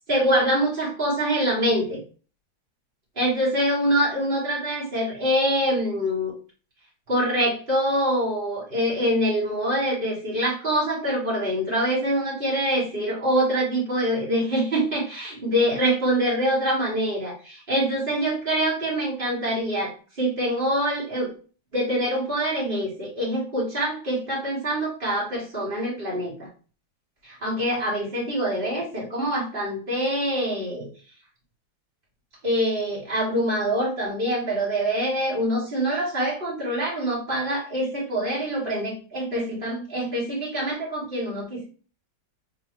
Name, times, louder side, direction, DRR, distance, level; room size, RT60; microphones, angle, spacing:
voice 1, 0.1-2.0 3.2-6.3 7.1-21.3 21.7-26.5 27.2-30.9 32.4-41.6, equal, 30° right, -6 dB, 2.1 m, -25 dB
3.9 x 3.0 x 3.1 m, 0.38 s
omnidirectional pair, 2.1 m